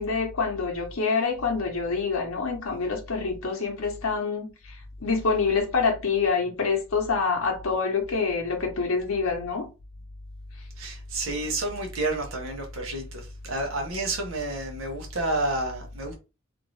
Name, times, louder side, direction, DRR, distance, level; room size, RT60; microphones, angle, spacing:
voice 1, 0.0-9.7, left 4 dB, 75° left, 0.8 m, -26 dB
voice 2, 10.8-16.1, right 2 dB, 70° right, 0.9 m, -30 dB
2.7 x 2.5 x 3.1 m
head